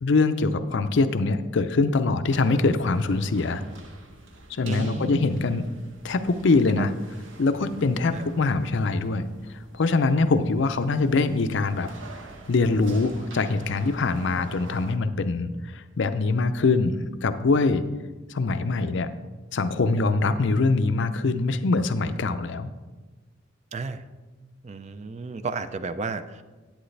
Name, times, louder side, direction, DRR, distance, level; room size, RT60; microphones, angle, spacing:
voice 1, 0.0-3.6 4.5-5.6 6.0-6.9 7.4-9.3 9.7-11.9 12.5-17.0 17.2-17.8 18.3-19.1 19.5-22.7, left 3 dB, 60° left, 10 dB, 0.5 m, -23 dB
sound 1, 2.3-15.0, right 2 dB, 70° right, 1.0 m, -46 dB
voice 2, 4.7-5.5 6.8-6.9 8.1-8.3 23.7-24.0 24.6-26.4, right 4 dB, 35° right, 11 dB, 0.4 m, -33 dB
10.0 x 8.6 x 3.3 m, 1.3 s
head